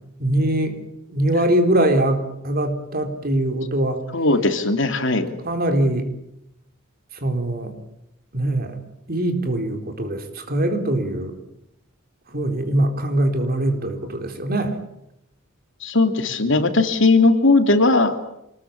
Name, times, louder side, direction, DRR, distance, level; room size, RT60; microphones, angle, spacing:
voice 1, 0.2-0.8 1.1-4.0 5.4-6.1 7.2-7.7 8.3-8.8 9.1-11.3 12.3-14.8, right 1 dB, 45° right, 6 dB, 4.1 m, -22 dB
voice 2, 4.1-5.3 15.8-18.2, left 3 dB, 60° left, 7 dB, 2.9 m, -18 dB
26.5 x 20.5 x 8.8 m, 0.82 s
head